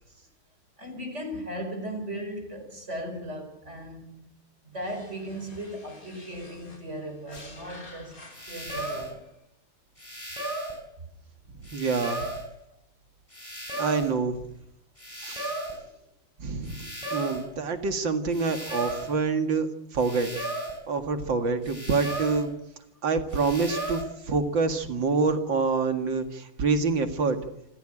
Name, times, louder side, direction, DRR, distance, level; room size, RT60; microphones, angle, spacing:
voice 1, 0.8-4.3 4.6-8.1 8.5-9.2 15.7-15.9, equal, 35° right, 4.6 m, -37 dB
sound 1, 4.7-9.3, left 2 dB, 45° left, 4.1 m, -49 dB
sound 2, 7.3-7.5 8.3-9.1 10.0-10.8 11.7-12.5 13.3-14.1 15.0-15.8 16.7-17.5 18.3-19.1 20.0-20.8 21.7-22.5 23.3-24.0, right 1 dB, 15° left, 5.5 m, -35 dB
voice 2, 11.7-12.2 13.8-14.4 15.1-15.6 16.4-20.3 20.9-22.5 23.0-27.4, right 4 dB, 70° right, 2.7 m, -26 dB
27.0 x 15.5 x 8.9 m
omnidirectional pair, 2.1 m